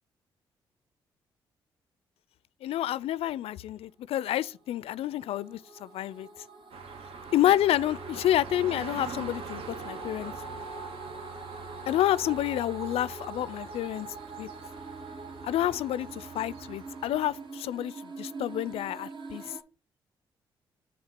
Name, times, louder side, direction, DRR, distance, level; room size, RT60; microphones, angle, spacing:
voice 1, 2.6-6.3 7.3-10.3 11.9-14.1 14.4-14.5 15.4-19.5, left 12 dB, 65° left, 0.4 m, -29 dB
sound 1, 4.5-19.6, right 3 dB, 45° right, 1.1 m, -43 dB
sound 2, 6.7-17.5, right 5 dB, 65° right, 0.9 m, -44 dB
7.4 x 2.8 x 5.8 m
hypercardioid pair, 50°, 11 cm